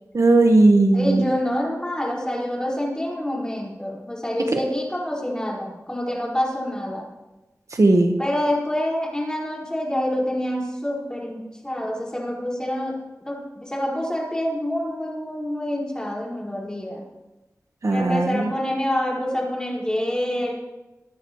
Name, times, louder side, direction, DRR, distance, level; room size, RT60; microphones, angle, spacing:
voice 1, 0.1-1.2 4.5-4.6 7.8-8.1 17.8-18.5, right 2 dB, 70° right, 4 dB, 1.3 m, -17 dB
voice 2, 0.9-7.0 8.2-13.0 13.2-17.0 17.9-20.5, left 1 dB, 15° left, -4 dB, 5.3 m, -27 dB
23.5 x 9.6 x 3.2 m, 1.1 s
wide cardioid pair, 60°, 6 cm